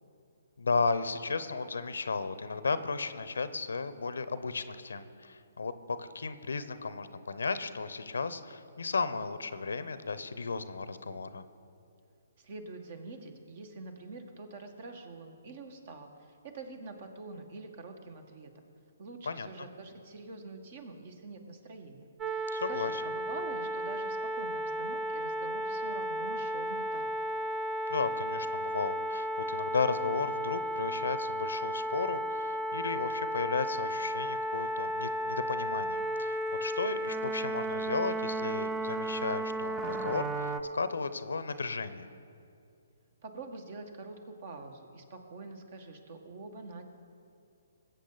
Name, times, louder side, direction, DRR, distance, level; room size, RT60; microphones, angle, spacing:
voice 1, 0.6-11.4 19.2-19.7 22.5-23.0 27.9-42.1, left 4 dB, 75° left, 13 dB, 0.7 m, -34 dB
voice 2, 12.4-18.7 19.0-27.1 43.2-46.8, right 3 dB, 50° right, 6 dB, 1.6 m, -46 dB
sound 1, 22.2-40.6, right 1 dB, 15° right, 0.6 m, -34 dB
20.5 x 8.1 x 4.0 m, 2.5 s
figure-of-eight pair, 135°, 0 cm